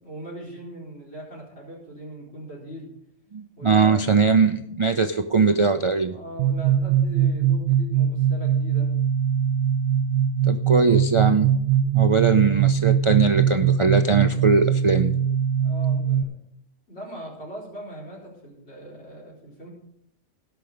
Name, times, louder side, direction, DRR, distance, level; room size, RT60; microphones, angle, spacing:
voice 1, 0.0-2.9 3.6-4.1 6.1-8.9 15.6-16.4 16.9-19.7, right 1 dB, 55° left, -4 dB, 4.5 m, -40 dB
voice 2, 3.3-6.2 10.4-11.6 11.9-15.2, right 4 dB, 45° right, 9 dB, 0.4 m, -20 dB
sound 1, 6.4-16.2, right 8 dB, 90° right, 1.0 m, -21 dB
18.0 x 6.0 x 5.1 m, 0.73 s
omnidirectional pair, 1.3 m